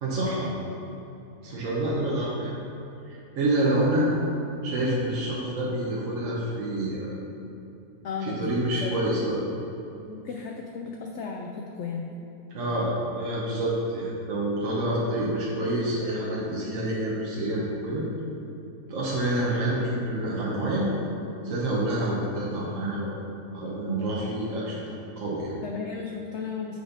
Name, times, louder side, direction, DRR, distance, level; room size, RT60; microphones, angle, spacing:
voice 1, 0.0-0.5 1.4-2.5 3.0-4.1 4.6-7.1 8.2-9.3 12.5-18.0 18.9-20.9 21.4-23.1 23.5-24.8 25.2-25.5, right 1 dB, 55° right, -6 dB, 1.3 m, -27 dB
voice 2, 8.0-8.5 8.7-8.9 10.1-12.2 25.6-26.8, left 5 dB, 85° left, 1 dB, 0.6 m, -34 dB
6.9 x 4.2 x 5.1 m, 2.8 s
omnidirectional pair, 1.7 m